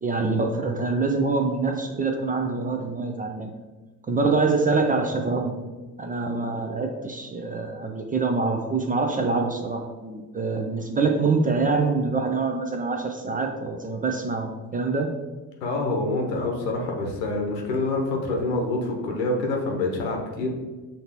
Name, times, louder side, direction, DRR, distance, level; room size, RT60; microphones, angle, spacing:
voice 1, 0.0-3.5 4.1-5.5 6.0-15.1, right 3 dB, 20° right, 3 dB, 0.4 m, -25 dB
voice 2, 15.6-20.5, left 2 dB, 80° left, 1 dB, 1.0 m, -26 dB
6.5 x 2.8 x 2.8 m, 1.3 s
hypercardioid pair, 55°, 49 cm